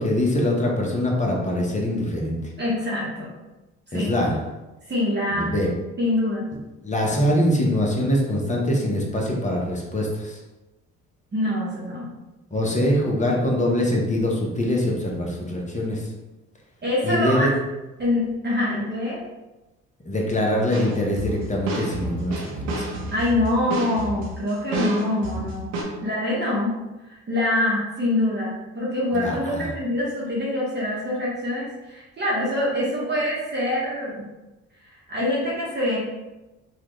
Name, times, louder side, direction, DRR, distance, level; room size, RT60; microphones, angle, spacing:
voice 1, 0.0-2.4 3.9-4.4 5.3-5.7 6.8-10.4 12.5-16.0 17.0-17.5 20.0-22.9 29.1-29.7, left 1 dB, 20° left, -1 dB, 0.9 m, -23 dB
voice 2, 2.6-3.3 3.9-4.1 4.9-5.5 6.0-6.5 11.3-12.1 16.8-17.5 18.0-19.2 23.1-25.7 26.0-26.7 27.0-34.3 35.1-36.0, left 1 dB, 30° right, -6 dB, 1.0 m, -25 dB
sound 1, 20.7-25.8, right 2 dB, 90° right, 0.8 m, -30 dB
3.2 x 2.4 x 3.1 m, 1.1 s
supercardioid pair, 70°, 33 cm